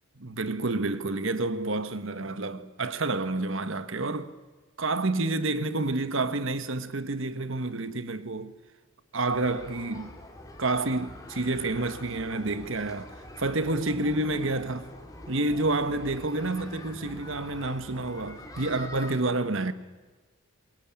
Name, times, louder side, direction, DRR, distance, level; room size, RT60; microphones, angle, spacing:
voice 1, 0.2-4.3 4.8-8.5 9.1-10.1 10.6-13.1 13.4-14.9 15.3-19.7, right 2 dB, 60° right, 1.4 m, -29 dB
sound 1, 9.3-19.2, left 1 dB, 15° left, 3.1 m, -45 dB
25.0 x 21.5 x 8.9 m
head